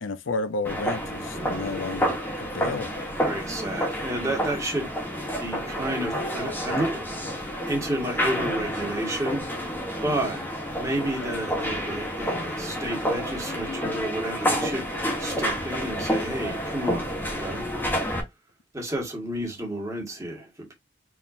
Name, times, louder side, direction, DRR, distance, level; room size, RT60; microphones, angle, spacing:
voice 1, 0.0-3.1, left 3 dB, 85° left, 0.6 m, -32 dB
sound 1, 0.6-18.2, equal, 10° left, 1.4 m, -29 dB
voice 2, 3.2-4.9 5.4-7.0 7.7-10.4 10.7-14.8 15.2-17.6 18.7-20.7, right 1 dB, 15° right, 1.7 m, -31 dB
4.5 x 3.7 x 2.6 m
head